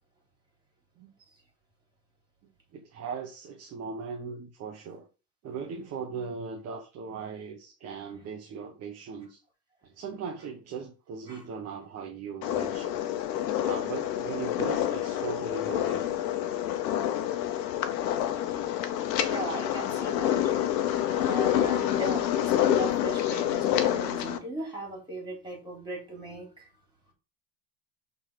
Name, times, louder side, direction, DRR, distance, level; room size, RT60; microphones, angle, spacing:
voice 1, 2.7-5.1 5.4-9.4 9.8-13.0 13.6-16.1, right 5 dB, 30° right, 1.1 m, -38 dB
sound 1, 12.4-24.4, left 11 dB, 75° left, 1.2 m, -28 dB
voice 2, 19.2-20.3 21.1-26.7, right 1 dB, 10° right, 3.7 m, -37 dB
6.2 x 4.1 x 5.0 m
supercardioid pair, 125°, 50 cm